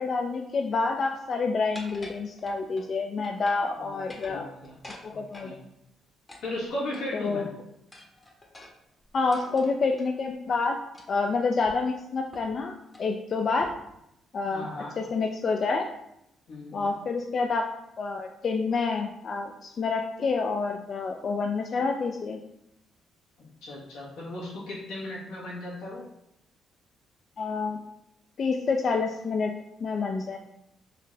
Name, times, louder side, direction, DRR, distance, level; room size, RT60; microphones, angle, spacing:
voice 1, 0.0-4.5 5.0-5.7 7.1-7.6 9.1-10.8 11.1-12.7 13.0-13.7 14.3-14.7 15.0-15.9 16.7-17.7 18.0-22.4 27.4-27.8 28.4-29.5 29.8-30.4, left 4 dB, 50° left, 3 dB, 0.3 m, -28 dB
sound 1, 1.7-2.9 3.2-3.7 4.0-5.5 6.3-7.3 7.9-10.1 10.9-11.3 11.6-11.7 12.3-12.6 12.9-13.1 13.6-14.0, left 1 dB, 20° left, 0.8 m, -48 dB
voice 2, 3.8-4.8 5.1-5.5 6.4-7.5 14.5-14.9 16.5-16.9 23.6-26.1, left 1 dB, 90° left, -6 dB, 1.5 m, -36 dB
4.0 x 2.6 x 3.2 m, 0.81 s
cardioid pair, 90°, 0 cm